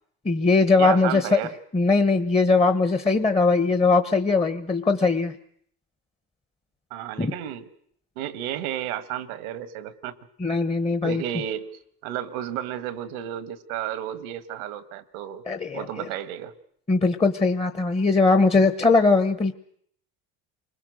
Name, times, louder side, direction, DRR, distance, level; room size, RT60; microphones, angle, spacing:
voice 1, 0.2-1.4 1.7-5.4 7.2-7.3 10.4-11.2 15.5-16.1 16.9-19.5, left 3 dB, 15° left, 8 dB, 1.0 m, -20 dB
voice 2, 0.8-1.5 6.9-7.7 8.2-10.1 11.0-11.7 12.0-15.4 15.7-16.5, right 11 dB, 90° right, 14 dB, 1.5 m, -32 dB
29.0 x 21.0 x 6.4 m, 0.66 s
supercardioid pair, 90°, 41 cm